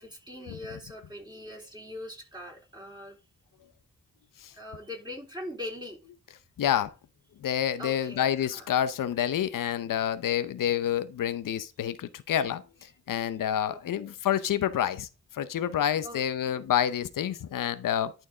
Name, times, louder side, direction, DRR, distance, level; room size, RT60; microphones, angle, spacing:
voice 1, 0.0-3.2 4.6-6.0 7.8-8.7 13.7-14.1 16.0-16.3 16.5-16.6, left 1 dB, 15° right, 3.9 m, -42 dB
voice 2, 6.6-6.9 7.4-15.1 15.3-18.1, left 10 dB, 90° left, 0.7 m, -28 dB
12.0 x 4.6 x 3.8 m
wide cardioid pair, 95°, 31 cm